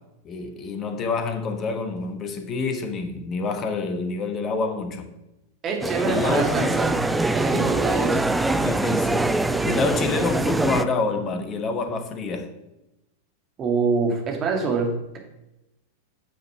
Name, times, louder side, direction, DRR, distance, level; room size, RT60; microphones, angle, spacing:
voice 1, 0.2-5.1 6.0-7.0 7.5-7.7 8.5-12.5, left 4 dB, 30° left, 1.1 m, -27 dB
voice 2, 5.6-7.0 7.3-8.2 13.6-15.2, right 4 dB, 30° right, 1.9 m, -25 dB
sound 1, 5.8-10.8, right 2 dB, 5° right, 0.4 m, -23 dB
9.3 x 6.4 x 4.3 m
figure-of-eight pair, 90°, 0 cm